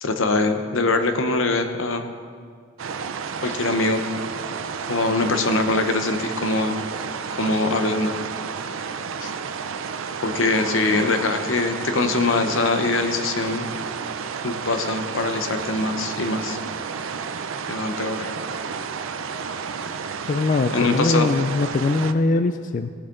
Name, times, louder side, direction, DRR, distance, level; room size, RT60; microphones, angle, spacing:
voice 1, 0.0-2.0 3.4-4.0 4.9-6.8 7.3-8.1 9.2-9.3 10.2-13.7 14.4-16.6 17.7-18.3 20.7-21.3, left 3 dB, 85° left, 7 dB, 0.9 m, -23 dB
sound 1, 2.8-22.1, right 6 dB, 85° right, 0.5 m, -31 dB
voice 2, 20.3-22.9, left 3 dB, 40° left, 8 dB, 0.3 m, -21 dB
18.0 x 7.6 x 3.8 m, 2.1 s
head